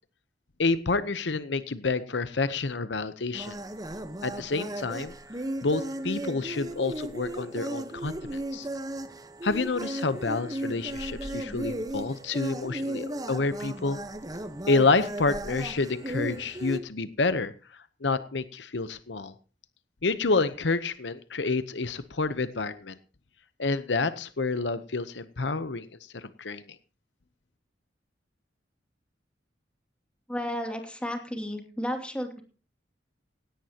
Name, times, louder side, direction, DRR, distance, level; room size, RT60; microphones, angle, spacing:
voice 1, 0.6-3.5 4.2-5.1 5.6-8.7 9.4-14.0 14.7-17.5 18.0-19.3 20.0-23.0 23.6-25.9 26.1-26.6, left 3 dB, 70° left, 13 dB, 0.9 m, -28 dB
sound 1, 3.3-16.8, right 1 dB, 20° right, 1.1 m, -36 dB
voice 2, 30.3-32.4, equal, 5° left, 4 dB, 2.7 m, -33 dB
17.0 x 17.0 x 2.9 m, 0.37 s
head